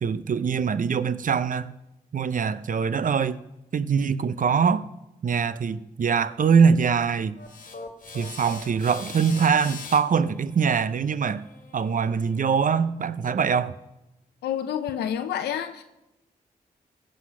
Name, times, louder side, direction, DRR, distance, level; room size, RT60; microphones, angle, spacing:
voice 1, 0.0-1.7 2.1-3.4 3.7-4.8 5.2-7.4 8.1-11.4 11.7-13.7, right 6 dB, 55° right, 15 dB, 0.6 m, -23 dB
sound 1, 7.4-12.5, left 4 dB, 55° left, 1.7 m, -43 dB
voice 2, 14.4-15.8, left 9 dB, 90° left, 9 dB, 0.6 m, -28 dB
15.5 x 7.9 x 4.9 m, 0.95 s
supercardioid pair, 40°, 16 cm